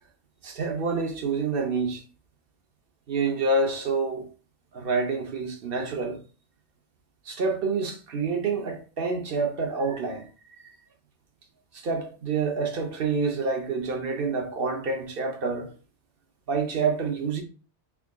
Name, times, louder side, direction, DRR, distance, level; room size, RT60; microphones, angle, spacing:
voice 1, 0.4-2.0 3.1-4.3 4.7-6.2 7.3-10.3 11.7-15.7 16.5-17.4, right 4 dB, 55° right, 0.8 m, -27 dB
3.6 x 3.6 x 2.2 m
omnidirectional pair, 1.2 m